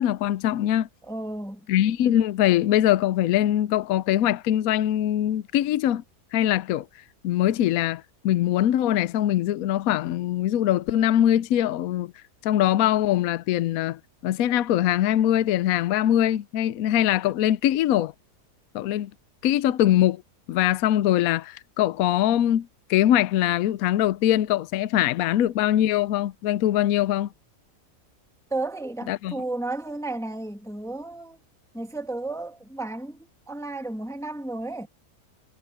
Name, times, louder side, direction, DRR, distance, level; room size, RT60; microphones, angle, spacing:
voice 1, 0.0-0.9 1.7-6.0 6.3-6.9 7.2-12.1 12.4-18.1 18.7-19.1 19.4-20.2 20.5-27.3 29.1-29.4, left 12 dB, 70° left, 1.0 m, -22 dB
voice 2, 1.0-1.7 28.5-31.4 31.7-33.2 33.5-34.9, right 2 dB, ahead, 1.3 m, -33 dB
omnidirectional pair, 1.7 m